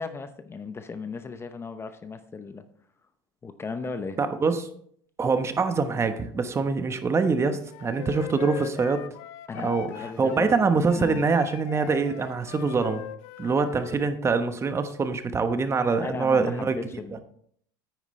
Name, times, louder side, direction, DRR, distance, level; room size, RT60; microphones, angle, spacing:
voice 1, 0.0-2.6 3.4-4.2 9.5-11.2 15.9-17.2, left 4 dB, 20° left, 10 dB, 0.8 m, -36 dB
voice 2, 4.2-4.7 5.2-9.1 9.5-9.9 10.2-13.0 13.4-16.8, right 4 dB, 25° right, 9 dB, 1.1 m, -24 dB
Wind instrument woodwind instrument, 7.7-10.5 10.9-14.0, left 13 dB, 65° left, 0.6 m, -40 dB
9.4 x 9.2 x 3.2 m, 0.62 s
supercardioid pair, 100°, 11 cm